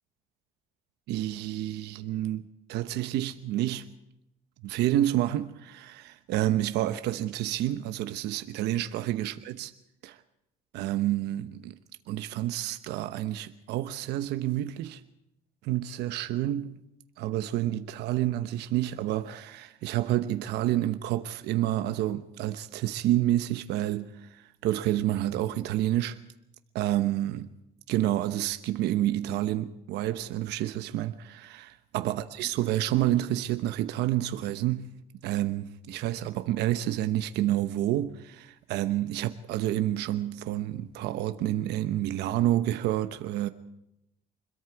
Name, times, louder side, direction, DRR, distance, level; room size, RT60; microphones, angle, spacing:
voice 1, 1.1-3.9 4.6-9.7 10.0-10.2 10.7-11.8 12.1-15.0 15.6-16.8 17.2-26.2 26.7-27.5 27.9-34.9 35.2-43.5, right 13 dB, 85° right, 1.0 m, -29 dB
26.0 x 21.5 x 4.8 m
cardioid pair, 110°, 17 cm